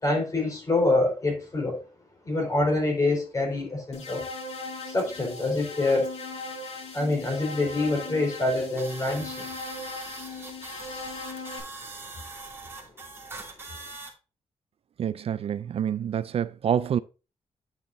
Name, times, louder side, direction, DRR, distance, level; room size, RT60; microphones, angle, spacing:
voice 1, 0.0-1.8 2.2-4.2 4.8-6.1 6.9-9.5, left 2 dB, 30° left, 4.5 m, -26 dB
sound 1, 3.9-11.6, left 3 dB, 75° left, 4.6 m, -38 dB
sound 2, 8.8-14.1, right 3 dB, 20° right, 2.8 m, -42 dB
voice 2, 15.0-17.0, right 9 dB, 55° right, 0.4 m, -27 dB
9.7 x 7.1 x 2.7 m
cardioid pair, 110°, 12 cm